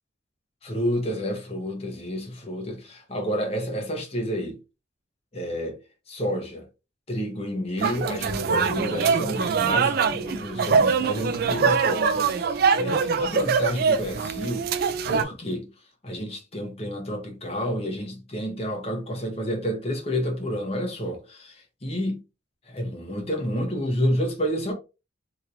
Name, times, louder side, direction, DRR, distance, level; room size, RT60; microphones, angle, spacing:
voice 1, 0.6-4.6 5.3-5.8 6.1-6.7 7.1-15.7 16.0-22.2 22.7-24.7, equal, 30° left, 1.0 m, -30 dB
sound 1, 7.8-15.2, right 5 dB, 50° right, 0.3 m, -23 dB
2.9 x 2.8 x 2.5 m
head